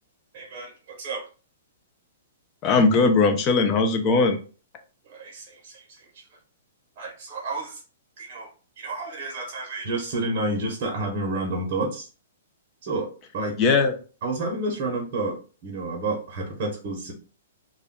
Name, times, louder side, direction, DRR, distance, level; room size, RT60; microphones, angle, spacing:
voice 1, 0.3-1.3 5.1-6.1 7.0-7.8 8.2-8.5 8.8-12.1 12.8-13.1 13.3-13.6 14.2-17.1, right 2 dB, 45° right, 0 dB, 0.7 m, -30 dB
voice 2, 2.6-4.4 13.6-13.9, left 4 dB, 25° left, 6 dB, 0.4 m, -19 dB
2.2 x 2.2 x 3.5 m, 0.37 s
hypercardioid pair, 155°, 0 cm